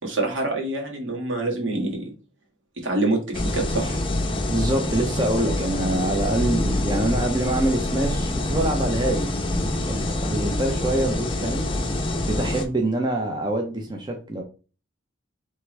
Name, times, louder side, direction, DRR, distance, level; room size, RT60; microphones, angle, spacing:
voice 1, 0.0-2.1 2.8-4.0, right 2 dB, 75° right, 0 dB, 1.6 m, -26 dB
sound 1, 3.3-12.6, left 1 dB, 25° left, 0.6 m, -26 dB
voice 2, 4.5-11.7 12.3-14.4, right 1 dB, 20° right, 2 dB, 0.6 m, -25 dB
4.6 x 3.4 x 3.2 m, 0.35 s
head